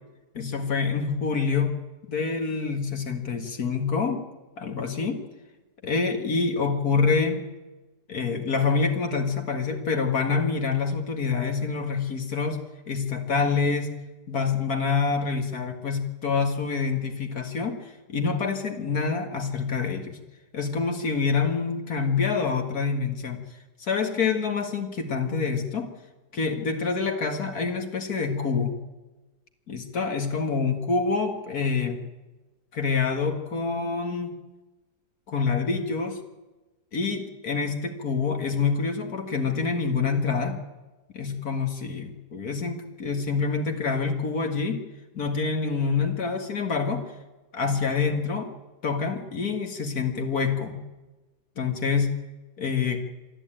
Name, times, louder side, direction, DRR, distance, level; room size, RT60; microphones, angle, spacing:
voice 1, 0.3-1.7 2.1-4.2 4.6-5.2 5.8-7.4 8.1-12.6 12.9-13.9 14.3-20.2 20.5-23.4 23.8-25.9 26.3-28.8 29.7-32.0 32.7-34.3 35.3-36.2 36.9-40.6 41.1-44.9 45.1-47.0 47.5-48.5 48.8-50.8 51.6-52.2 52.6-53.0, left 5 dB, 65° left, 4 dB, 2.3 m, -26 dB
26.5 x 11.5 x 9.0 m, 1.1 s
omnidirectional pair, 1.7 m